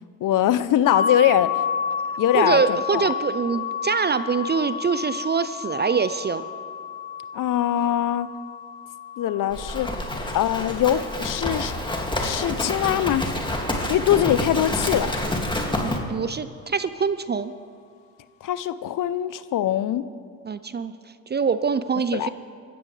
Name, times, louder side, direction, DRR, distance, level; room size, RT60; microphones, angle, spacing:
voice 1, 0.2-1.5 2.2-3.1 7.3-8.3 9.2-9.9 10.3-11.7 12.2-13.2 13.9-15.1 18.4-20.0 22.1-22.3, left 11 dB, 45° left, 15 dB, 0.7 m, -22 dB
sound 1, 0.9-12.6, left 7 dB, 60° left, 1.1 m, -31 dB
voice 2, 2.3-6.4 15.8-17.5 20.4-20.9 21.3-22.3, right 5 dB, 20° right, 13 dB, 0.6 m, -24 dB
Livestock farm animals working animals, 9.5-16.0, left 1 dB, 10° left, 2.3 m, -28 dB
24.0 x 13.0 x 3.3 m, 2.2 s
hypercardioid pair, 65°, 48 cm